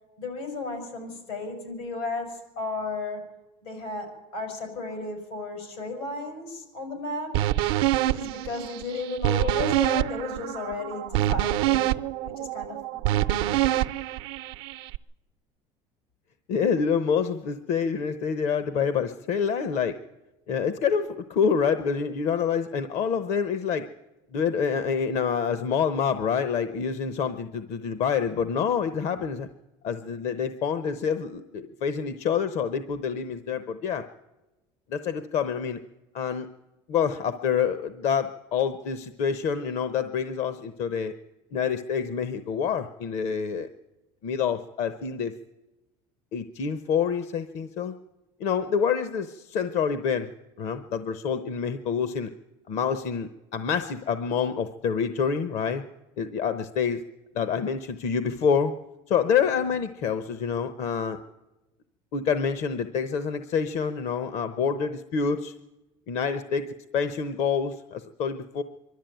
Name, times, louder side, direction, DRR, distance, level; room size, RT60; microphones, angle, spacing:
voice 1, 0.2-3.3 3.6-7.4 8.1-11.9 12.2-13.0, left 3 dB, 90° left, 5 dB, 6.2 m, -34 dB
sound 1, 7.3-15.0, right 14 dB, 85° right, 0.7 m, -26 dB
voice 2, 16.5-20.0 20.5-23.9 24.3-29.5 29.8-34.1 34.9-35.8 36.1-36.5 36.9-41.1 41.5-43.7 44.2-45.3 46.3-47.9 48.4-50.3 50.6-52.3 52.7-55.8 56.2-57.0 57.3-58.7 59.1-61.2 62.1-65.5 66.1-68.6, left 6 dB, 60° left, 12 dB, 0.9 m, -27 dB
24.0 x 12.0 x 9.1 m, 1.1 s
cardioid pair, 125°, 13 cm